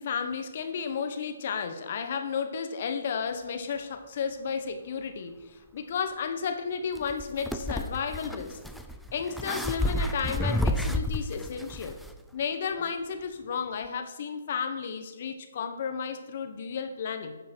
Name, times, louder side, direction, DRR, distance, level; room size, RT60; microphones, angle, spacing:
voice 1, 0.0-8.6 9.1-12.0 12.3-17.4, left 6 dB, 50° left, 8 dB, 1.3 m, -33 dB
sound 1, 7.0-12.1, left 1 dB, ahead, 0.5 m, -31 dB
11.5 x 7.3 x 4.6 m, 1.2 s
hypercardioid pair, 150°, 0 cm